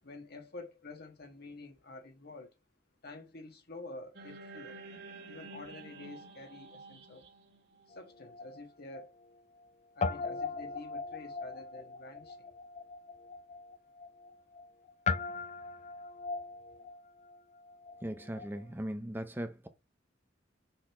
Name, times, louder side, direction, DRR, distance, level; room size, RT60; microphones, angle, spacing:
voice 1, 0.0-2.6 3.0-4.8 5.2-7.2 7.9-9.1 9.9-12.5, left 2 dB, 55° left, 1.6 m, -49 dB
sound 1, 4.1-8.5, right 3 dB, 60° right, 2.1 m, -50 dB
Guitar, 7.9-9.7 10.0-18.6, left 4 dB, 35° left, 0.4 m, -40 dB
voice 2, 18.0-19.7, equal, 10° right, 0.6 m, -38 dB
6.3 x 4.0 x 4.8 m
head